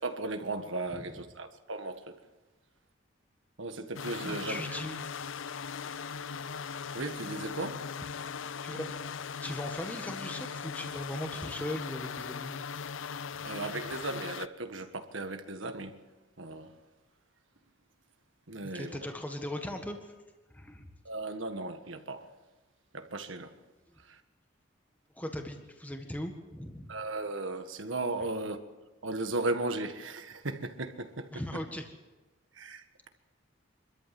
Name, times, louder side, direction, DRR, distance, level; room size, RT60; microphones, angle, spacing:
voice 1, 0.0-2.1 3.6-4.8 6.9-7.8 13.4-16.0 16.4-16.7 18.5-19.0 21.0-22.3 22.9-23.5 24.1-24.2 26.9-28.6 29.0-31.3 32.5-33.1, right 2 dB, 75° right, 1.6 m, -36 dB
sound 1, 4.0-14.5, left 6 dB, 75° left, 0.6 m, -39 dB
voice 2, 4.2-5.0 8.6-8.9 9.4-12.6 13.4-13.5 18.6-20.1 20.5-20.9 25.1-26.9 31.3-31.9, left 1 dB, 10° left, 1.6 m, -39 dB
25.0 x 13.5 x 7.7 m
head